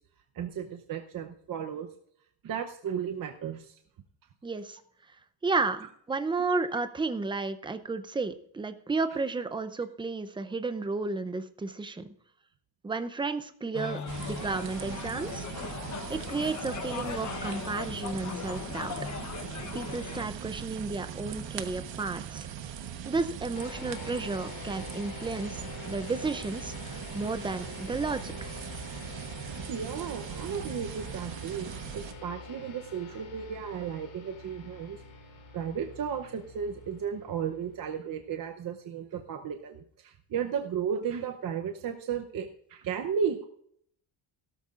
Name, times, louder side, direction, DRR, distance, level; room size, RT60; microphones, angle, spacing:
voice 1, 0.4-1.9 2.4-3.7 29.7-35.0 35.5-43.5, right 7 dB, 45° right, 5 dB, 0.8 m, -34 dB
voice 2, 4.4-4.8 5.4-12.1 12.8-15.4 16.1-19.0 19.7-22.5 23.1-28.5, right 3 dB, 10° right, 10 dB, 0.5 m, -32 dB
sound 1, 13.7-20.3, left 6 dB, 40° left, 1.0 m, -38 dB
sound 2, 14.1-32.1, right 8 dB, 70° right, 1.2 m, -40 dB
sound 3, 23.5-38.4, left 4 dB, 75° left, 3.0 m, -46 dB
16.5 x 13.0 x 2.5 m, 0.66 s
cardioid pair, 175°, 47 cm